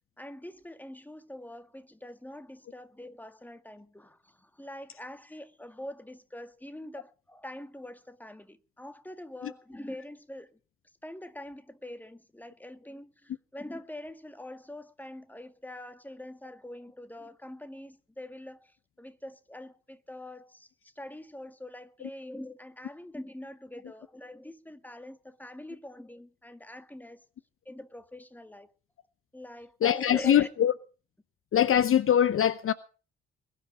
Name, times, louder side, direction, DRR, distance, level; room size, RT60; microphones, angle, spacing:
voice 1, 0.2-10.6 11.0-27.3 27.7-28.7 29.3-30.5, left 1 dB, 5° left, 1.9 m, -44 dB
voice 2, 29.8-30.7 31.5-32.7, left 10 dB, 45° left, 0.8 m, -22 dB
21.5 x 11.0 x 5.0 m
figure-of-eight pair, 40°, 31 cm